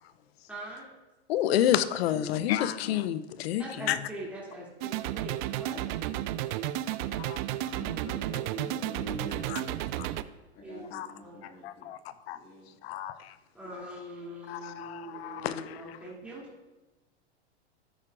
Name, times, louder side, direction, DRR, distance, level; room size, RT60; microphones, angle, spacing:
voice 1, 0.5-0.9 3.6-5.8 10.3-10.9 11.2-11.4 13.5-16.5, right 1 dB, 5° right, -7 dB, 2.8 m, -43 dB
voice 2, 1.3-4.0 7.2-7.4 9.5-9.6 10.0-10.1 10.9-11.1 11.6-12.0 12.3-12.4 12.8-13.3 14.5-16.0, left 11 dB, 65° left, 14 dB, 0.6 m, -29 dB
voice 3, 2.1-2.7 6.4-9.8 10.5-11.9 12.3-12.7, equal, 40° left, -4 dB, 2.3 m, -46 dB
sound 1, 4.8-10.2, right 13 dB, 45° right, 0.4 m, -33 dB
13.0 x 8.4 x 2.5 m, 1.1 s
hypercardioid pair, 110°, 33 cm